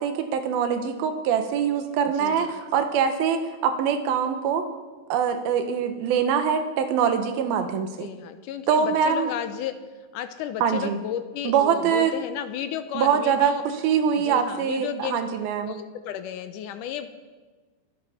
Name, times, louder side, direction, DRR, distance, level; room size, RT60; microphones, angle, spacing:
voice 1, 0.0-4.6 5.1-8.1 8.7-9.3 10.6-11.0 11.4-12.1 12.9-13.5 13.8-15.7, right 7 dB, 85° right, 7 dB, 2.9 m, -23 dB
voice 2, 2.2-2.6 7.9-9.8 10.1-13.6 14.2-15.2 15.7-17.1, left 10 dB, 75° left, 10 dB, 2.1 m, -33 dB
23.0 x 12.0 x 4.3 m, 1.3 s
omnidirectional pair, 4.2 m